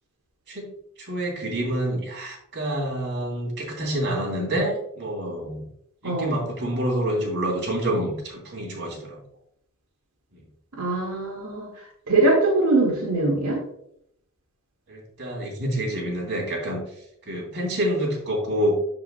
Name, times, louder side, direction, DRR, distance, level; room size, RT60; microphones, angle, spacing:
voice 1, 1.0-5.7 6.0-9.2 10.3-10.4 14.9-16.8 17.2-18.8, right 1 dB, 55° right, -2 dB, 3.0 m, -27 dB
voice 2, 6.0-6.3 10.8-13.6, right 2 dB, 75° right, -3 dB, 1.9 m, -22 dB
13.0 x 4.9 x 2.2 m, 0.72 s
head